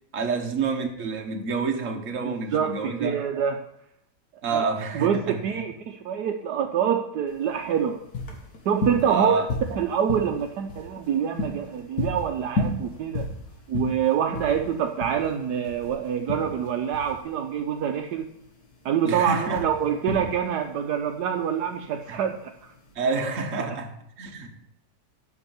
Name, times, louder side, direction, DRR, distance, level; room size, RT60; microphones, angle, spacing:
voice 1, 0.1-3.1 4.4-5.4 9.0-9.5 19.0-19.6 22.1-22.2 22.9-24.6, right 4 dB, 50° right, 1.5 m, -28 dB
voice 2, 2.2-3.6 4.5-4.7 4.9-8.0 8.6-9.4 9.7-13.3 13.7-18.3 18.8-22.5 23.6-23.7, right 8 dB, 70° right, 1.2 m, -26 dB
sound 1, 7.3-22.9, left 2 dB, 60° left, 2.1 m, -34 dB
8.6 x 6.1 x 7.1 m
omnidirectional pair, 1.9 m